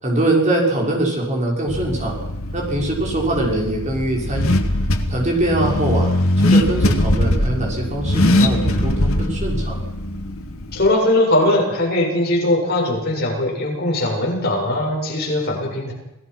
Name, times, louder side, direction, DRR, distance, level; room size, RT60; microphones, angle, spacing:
voice 1, 0.0-2.2 2.5-4.6 5.1-6.1 6.4-9.8, right 1 dB, 35° right, -1 dB, 6.2 m, -22 dB
Car / Accelerating revving vroom, 1.7-10.9, left 1 dB, 75° left, 2.3 m, -21 dB
voice 2, 10.7-15.9, left 1 dB, 45° left, -2 dB, 7.8 m, -20 dB
27.5 x 18.5 x 6.2 m, 0.90 s
head